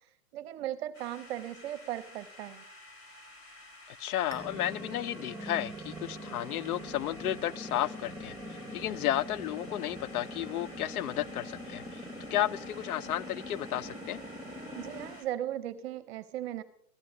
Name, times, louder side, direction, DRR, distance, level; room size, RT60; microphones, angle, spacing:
voice 1, 0.3-2.6 14.7-16.6, right 12 dB, 40° right, 0.7 m, -37 dB
sound 1, 0.9-15.3, left 2 dB, 30° left, 2.5 m, -52 dB
voice 2, 4.0-12.0 12.3-14.2, left 13 dB, 70° left, 0.5 m, -33 dB
sound 2, 4.3-15.2, equal, 10° right, 1.0 m, -43 dB
15.0 x 12.5 x 2.6 m
hypercardioid pair, 130°, 46 cm